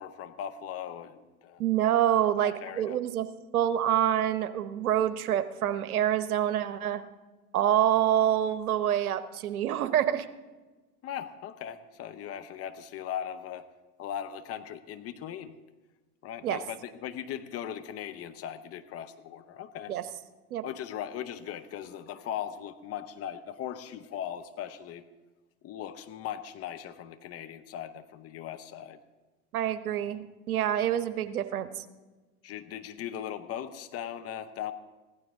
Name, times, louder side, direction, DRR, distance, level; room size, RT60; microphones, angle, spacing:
voice 1, 0.0-1.6 2.4-3.0 11.0-13.7 14.0-15.5 16.2-19.9 20.6-25.0 25.6-29.0 32.4-34.7, left 10 dB, 35° left, 10 dB, 0.8 m, -39 dB
voice 2, 1.6-3.3 3.5-7.0 7.5-10.3 16.4-16.6 19.9-20.0 20.5-20.6 29.5-31.8, right 11 dB, 75° right, 12 dB, 1.0 m, -26 dB
15.5 x 12.0 x 3.7 m, 1.2 s
hypercardioid pair, 95°, 44 cm